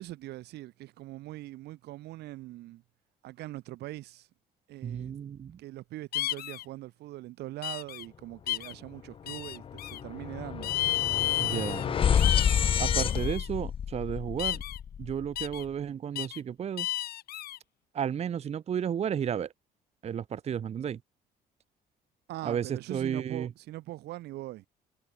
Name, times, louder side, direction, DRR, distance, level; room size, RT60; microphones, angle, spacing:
voice 1, 0.0-2.8 3.2-4.3 4.7-5.1 5.6-10.7 22.3-24.7, right 16 dB, 80° right, 2.2 m, -42 dB
voice 2, 4.8-5.6 11.4-12.1 12.8-14.6 15.0-16.9 17.9-19.5 20.0-21.0 22.4-23.5, right 8 dB, 40° right, 0.8 m, -33 dB
sound 1, 6.1-6.6 7.6-8.0 8.5-8.7 9.3-10.0 10.6-11.8 12.1-13.5 14.4-14.8 15.4-15.6 16.2-16.4 16.8-17.6, left 13 dB, 65° left, 1.5 m, -32 dB
sound 2, 8.9-9.0 9.3-15.5, left 8 dB, 30° left, 0.4 m, -29 dB
cardioid pair, 110°, 17 cm